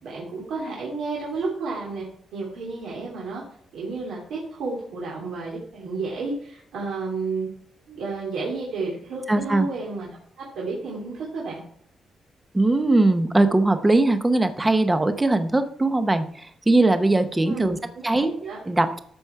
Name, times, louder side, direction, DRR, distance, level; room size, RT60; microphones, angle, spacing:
voice 1, 0.0-2.0 2.3-3.4 3.7-7.5 7.9-10.1 10.4-11.6 17.4-18.6, right 3 dB, 80° right, -4 dB, 3.0 m, -31 dB
voice 2, 9.3-9.7 12.5-17.8 18.0-18.3 18.7-19.0, right 2 dB, 10° right, 9 dB, 0.7 m, -20 dB
13.0 x 6.1 x 4.6 m, 0.67 s
wide cardioid pair, 175°, 0 cm